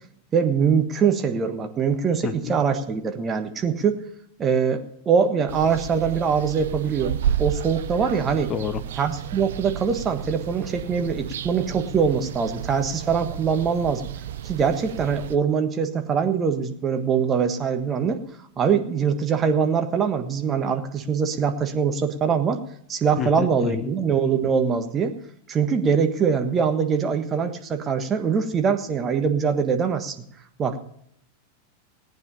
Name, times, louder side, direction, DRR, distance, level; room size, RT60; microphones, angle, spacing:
voice 1, 0.3-4.0 4.4-8.5 9.0-14.1 14.4-18.2 18.6-22.6 22.9-25.1 25.5-30.2 30.6-30.8, right 6 dB, 25° right, 6 dB, 1.4 m, -23 dB
voice 2, 2.2-2.6 8.5-8.8 23.2-23.9, left 8 dB, 25° left, 10 dB, 0.9 m, -29 dB
sound 1, 5.5-15.4, right 10 dB, 60° right, 0.7 m, -32 dB
18.0 x 9.4 x 5.5 m, 0.70 s
figure-of-eight pair, 90°, 0 cm